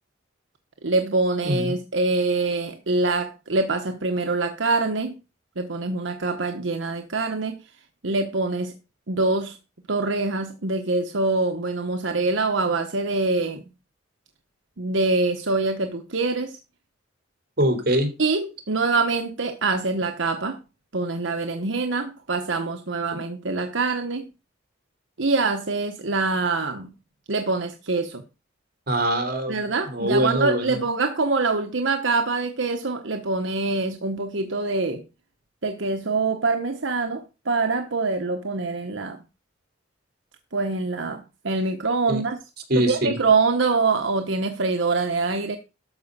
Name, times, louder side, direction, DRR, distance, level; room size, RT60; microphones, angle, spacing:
voice 1, 0.8-5.1 5.6-7.6 8.0-8.7 9.1-9.6 9.9-13.6 14.8-16.6 18.2-20.6 20.9-24.2 25.2-26.9 27.3-28.2 29.5-35.0 35.6-39.2 40.5-42.4 42.7-45.6, right 3 dB, 80° right, 6 dB, 1.1 m, -24 dB
voice 2, 1.4-1.7 17.6-18.1 28.9-29.6 29.9-30.8 42.1-42.2 42.7-43.2, right 1 dB, 55° right, 6 dB, 3.3 m, -23 dB
12.5 x 5.1 x 6.7 m, 0.29 s
head